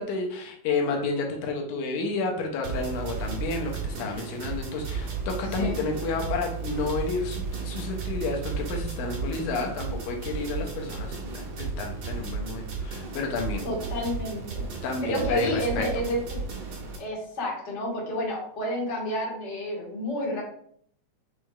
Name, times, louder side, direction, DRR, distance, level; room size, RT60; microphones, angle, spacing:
voice 1, 0.0-13.7 14.8-15.9, left 4 dB, 80° left, 2 dB, 2.1 m, -31 dB
sound 1, 2.6-17.0, right 5 dB, 80° right, 1.1 m, -34 dB
voice 2, 13.6-14.7 15.0-16.4 17.0-20.4, equal, 55° left, -4 dB, 0.8 m, -30 dB
6.2 x 3.1 x 2.3 m, 0.64 s
omnidirectional pair, 3.7 m